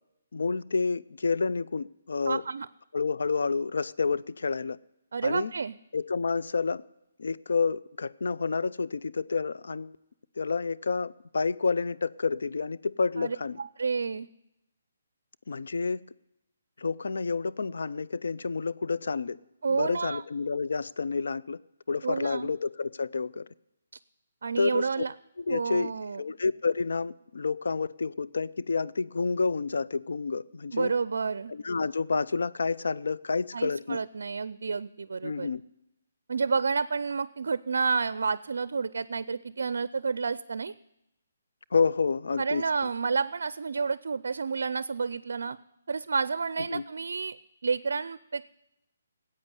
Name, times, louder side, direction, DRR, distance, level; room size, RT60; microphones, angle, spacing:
voice 1, 0.3-2.4 2.9-4.8 5.2-5.5 5.9-6.8 7.2-10.0 10.4-13.6 15.5-16.1 16.8-19.4 19.7-21.6 21.9-23.5 24.6-25.0 25.4-25.9 26.2-30.9 31.5-34.0 35.2-35.6 41.7-42.6 46.7-46.8, left 4 dB, 75° left, 0.5 m, -29 dB
voice 2, 2.3-2.7 5.1-5.8 13.2-14.3 19.6-20.2 22.0-22.5 24.4-25.1 25.5-26.2 30.7-31.5 33.5-35.5 36.3-40.7 42.4-45.6 45.9-47.4 47.6-48.5, right 5 dB, 70° right, 0.4 m, -30 dB
14.0 x 8.5 x 9.7 m
hypercardioid pair, 155°, 0 cm